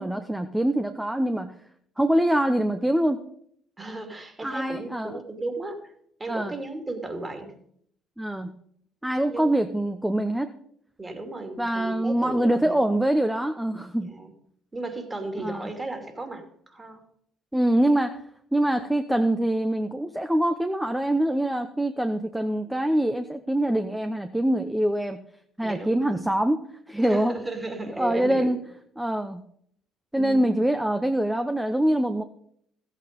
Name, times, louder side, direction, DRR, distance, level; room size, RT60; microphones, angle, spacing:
voice 1, 0.0-1.5 2.0-3.2 4.4-5.2 6.3-6.5 8.2-8.5 9.0-10.5 11.6-14.1 15.4-15.7 17.5-18.2 18.5-25.2 25.6-27.3 28.0-28.6 29.0-29.4 30.1-32.2, right 1 dB, 5° right, 7 dB, 0.9 m, -24 dB
voice 2, 3.8-5.9 6.2-7.6 9.3-9.6 11.0-12.8 14.1-14.3 14.7-17.0 25.6-26.3 27.0-28.5 30.2-30.5, right 2 dB, 20° right, 6 dB, 2.7 m, -35 dB
14.0 x 8.4 x 5.3 m, 0.68 s
hypercardioid pair, 60°, 0 cm